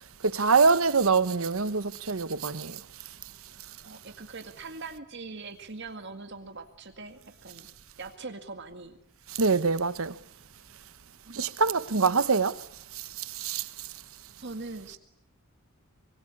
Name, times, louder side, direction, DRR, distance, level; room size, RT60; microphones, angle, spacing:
voice 1, 0.2-2.8 9.3-10.1 11.3-12.6 13.2-13.6, right 4 dB, 70° right, 1.0 m, -24 dB
voice 2, 3.8-7.7 8.0-9.0 11.3-11.4 14.4-15.0, right 3 dB, 55° right, 2.1 m, -42 dB
24.5 x 23.5 x 9.8 m
head